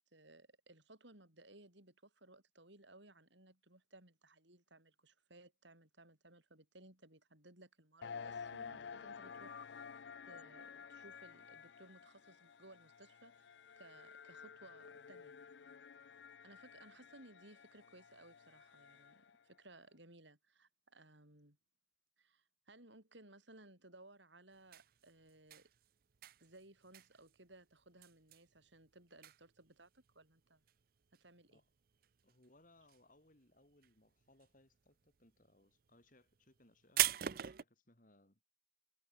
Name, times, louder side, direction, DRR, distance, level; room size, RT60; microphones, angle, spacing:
voice 1, 0.1-9.9 10.3-15.4 16.4-21.6 22.2-25.7 26.4-30.6 31.1-31.6, right 2 dB, 70° right, 7.6 m, -61 dB
sound 1, 8.0-19.4, left 6 dB, 65° left, 0.5 m, -52 dB
sound 2, 24.5-32.5 32.8-33.5 33.7-37.6, right 13 dB, 50° right, 0.5 m, -41 dB
voice 2, 32.2-38.4, left 2 dB, 45° left, 2.7 m, -68 dB
head